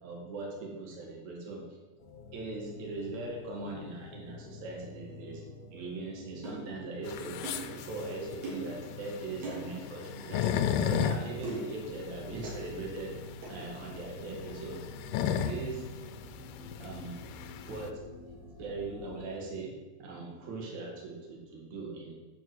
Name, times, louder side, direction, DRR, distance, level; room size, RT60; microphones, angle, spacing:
voice 1, 0.0-1.6 2.3-5.4 5.7-7.4 7.7-13.2 13.5-14.8 15.3-15.8 16.8-17.2 17.6-18.0 18.6-19.7 20.0-22.2, right 3 dB, 50° right, -1 dB, 3.1 m, -40 dB
sound 1, 2.0-19.3, left 3 dB, 40° left, 1.2 m, -48 dB
sound 2, 6.4-6.6 7.4-7.7 8.4-8.7 9.4-9.6 10.4-10.6 11.4-11.7 12.4-12.6 13.4-13.6, right 3 dB, 70° right, 5.5 m, -39 dB
sound 3, 7.0-17.9, left 8 dB, 80° left, 2.2 m, -34 dB
10.5 x 5.3 x 8.0 m, 1.2 s
omnidirectional pair, 4.6 m